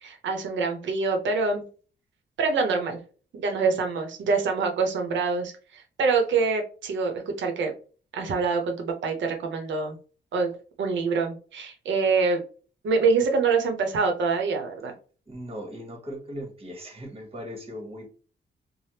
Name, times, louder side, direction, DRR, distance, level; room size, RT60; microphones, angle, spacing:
voice 1, 0.0-1.6 2.4-3.0 3.3-7.7 8.1-10.0 10.3-10.5 10.8-12.4 12.8-14.9, right 4 dB, 80° right, 4 dB, 0.7 m, -25 dB
voice 2, 15.3-18.1, equal, 30° right, 2 dB, 1.0 m, -38 dB
3.4 x 2.0 x 2.8 m, 0.39 s
cardioid pair, 80°, 19 cm